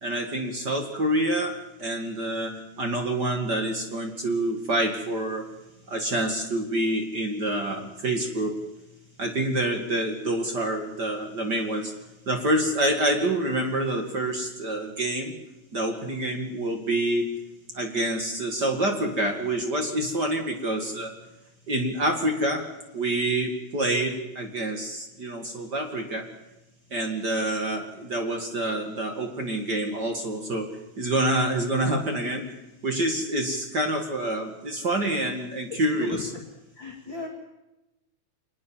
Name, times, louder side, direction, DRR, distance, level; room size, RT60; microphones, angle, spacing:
voice 1, 0.0-5.4 5.9-8.6 9.2-11.9 12.3-15.3 15.7-17.3 17.7-21.1 21.7-22.7 22.9-26.3 26.9-32.6 32.8-36.3, right 1 dB, 35° right, 4 dB, 2.1 m, -27 dB
voice 2, 35.7-36.2 36.8-37.3, left 2 dB, 35° left, 1 dB, 2.3 m, -35 dB
25.0 x 20.0 x 7.3 m, 0.94 s
omnidirectional pair, 4.2 m